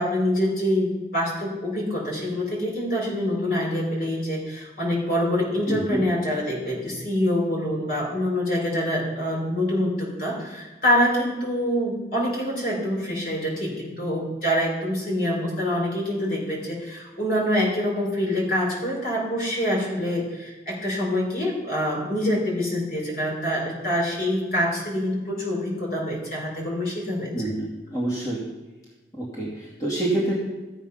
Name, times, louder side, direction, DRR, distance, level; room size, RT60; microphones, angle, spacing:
voice 1, 0.0-27.3, equal, 55° left, -2 dB, 4.2 m, -25 dB
voice 2, 5.7-6.0 27.3-28.4 29.1-30.3, right 1 dB, 20° left, -6 dB, 2.5 m, -27 dB
14.5 x 8.0 x 5.6 m, 1.1 s
head